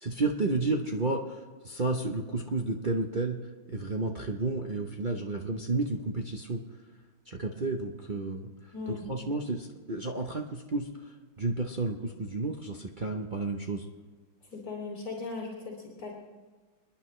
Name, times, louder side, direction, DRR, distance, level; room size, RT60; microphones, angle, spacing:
voice 1, 0.0-6.6 7.3-8.5 8.9-13.9, right 3 dB, 55° right, 2 dB, 0.5 m, -32 dB
voice 2, 8.7-9.1 14.5-16.1, left 4 dB, 45° left, -3 dB, 3.0 m, -38 dB
28.0 x 10.0 x 3.2 m, 1.4 s
omnidirectional pair, 2.1 m